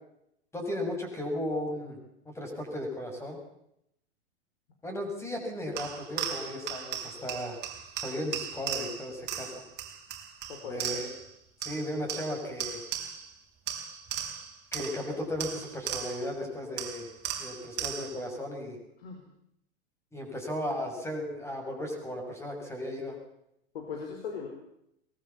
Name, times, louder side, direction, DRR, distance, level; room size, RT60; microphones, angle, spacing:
voice 1, 0.5-2.0 2.3-3.4 4.8-7.6 8.0-9.5 10.6-11.1 11.6-12.8 14.7-17.1 17.4-18.8 20.1-23.2, left 1 dB, 10° left, 3 dB, 7.0 m, -35 dB
sound 1, 5.8-11.3 11.6-13.3 13.7-16.4 16.8-18.3, right 9 dB, 30° right, 4.4 m, -37 dB
voice 2, 10.5-11.0 19.0-19.2 23.7-24.5, left 6 dB, 60° left, 2 dB, 4.8 m, -39 dB
23.0 x 20.5 x 7.2 m, 0.79 s
figure-of-eight pair, 95°, 34 cm